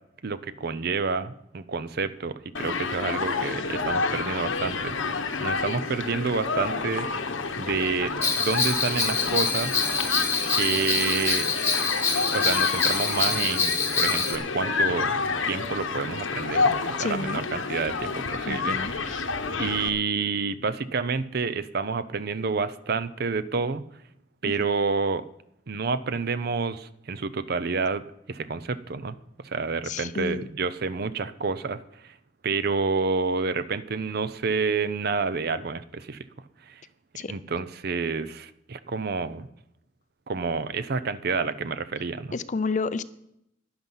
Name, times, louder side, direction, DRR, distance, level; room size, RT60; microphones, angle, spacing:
voice 1, 0.2-7.1 7.6-9.9 10.5-11.5 12.3-15.2 15.5-19.3 19.6-23.8 24.4-25.2 25.7-32.1 32.4-36.2 36.6-36.8 37.3-39.5 40.3-42.4, right 4 dB, 55° right, 14 dB, 0.6 m, -29 dB
Human group actions, 2.5-19.9, left 4 dB, 80° left, 1.1 m, -29 dB
Bell, 8.2-14.4, left 5 dB, 15° left, 1.3 m, -26 dB
voice 2, 17.0-17.4 18.5-18.9 29.8-30.5 37.2-37.3 42.3-43.0, left 4 dB, 40° left, 15 dB, 0.5 m, -30 dB
11.5 x 10.5 x 5.6 m, 0.78 s
head